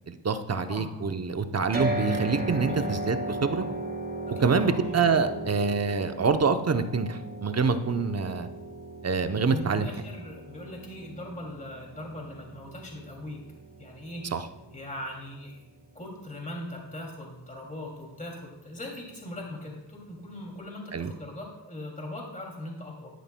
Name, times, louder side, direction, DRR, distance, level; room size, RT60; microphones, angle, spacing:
voice 1, 0.1-3.7 4.4-8.5 9.0-9.9 14.3-14.4 20.9-21.1, right 5 dB, 35° right, 8 dB, 0.8 m, -26 dB
voice 2, 0.6-0.9 2.7-2.9 4.4-5.2 9.5-13.4 13.8-14.2 14.7-15.7 15.9-23.1, left 1 dB, 15° left, -1 dB, 2.6 m, -40 dB
sound 1, 1.7-15.9, right 1 dB, 20° right, 1.7 m, -36 dB
12.5 x 10.0 x 2.2 m, 0.97 s
cardioid pair, 75°, 44 cm